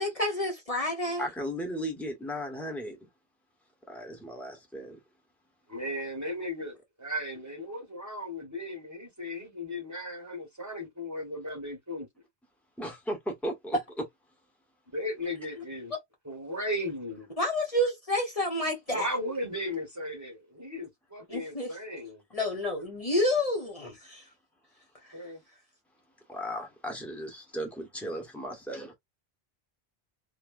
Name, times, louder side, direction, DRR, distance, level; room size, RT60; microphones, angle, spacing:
voice 1, 0.0-1.2 17.4-19.1 21.3-21.7 22.3-24.2, left 1 dB, 35° left, 1.0 m, -29 dB
voice 2, 1.2-3.1 3.9-5.0 12.8-13.8 26.3-28.9, equal, ahead, 1.1 m, -36 dB
voice 3, 5.7-12.1 14.9-15.9 16.2-17.3 18.9-22.2 25.1-25.4, left 1 dB, 15° right, 1.3 m, -36 dB
2.9 x 2.3 x 2.5 m
omnidirectional pair, 1.0 m